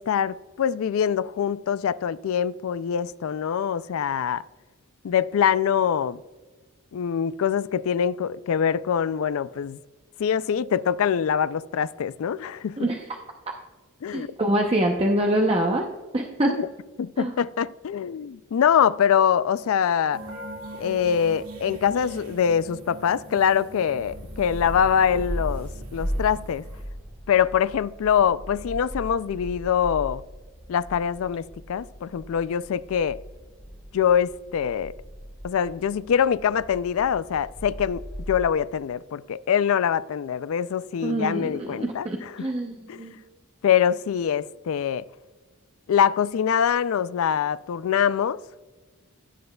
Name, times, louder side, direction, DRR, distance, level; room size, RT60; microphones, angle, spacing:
voice 1, 0.0-4.4 5.0-6.2 6.9-9.8 10.2-12.9 14.0-14.3 16.4-16.7 17.0-20.2 20.8-26.6 27.3-30.2 30.7-33.2 33.9-35.0 35.4-42.5 42.9-43.1 43.6-45.0 45.9-48.4, left 8 dB, 75° left, 0.3 m, -24 dB
voice 2, 14.1-15.9 16.1-16.5 17.2-17.3 41.0-43.2, right 1 dB, 25° right, 0.7 m, -25 dB
sound 1, 20.1-26.9, right 1 dB, 80° right, 2.1 m, -42 dB
sound 2, 24.0-38.9, equal, ahead, 1.3 m, -38 dB
16.0 x 7.8 x 2.3 m
head